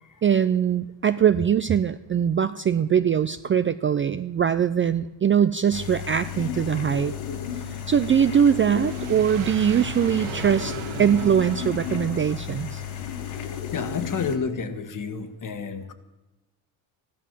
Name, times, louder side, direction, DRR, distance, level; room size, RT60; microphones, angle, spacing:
voice 1, 0.2-7.1 7.9-12.8, right 8 dB, 30° right, 12 dB, 0.4 m, -22 dB
sound 1, 5.7-14.4, left 9 dB, 80° left, 1.7 m, -33 dB
sound 2, 6.9-13.6, right 8 dB, 85° right, 1.3 m, -39 dB
voice 2, 13.4-15.9, left 5 dB, 40° left, 10 dB, 1.6 m, -31 dB
14.0 x 11.0 x 7.4 m, 1.0 s
cardioid pair, 100°, 47 cm